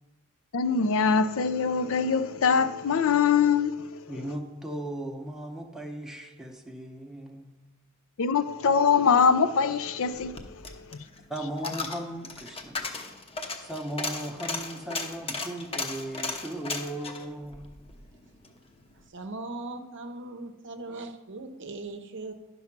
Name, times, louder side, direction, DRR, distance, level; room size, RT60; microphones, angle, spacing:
voice 1, 0.5-4.0 8.2-10.6 10.9-11.0, left 6 dB, 65° left, 0.5 m, -23 dB
voice 2, 4.1-7.5 11.3-12.9 13.6-17.7, right 1 dB, ahead, 0.8 m, -37 dB
Coin (dropping), 10.1-18.6 18.9-19.0, left 3 dB, 25° left, 0.8 m, -36 dB
voice 3, 19.1-22.3, right 2 dB, 55° right, 0.7 m, -39 dB
10.5 x 5.4 x 6.0 m
head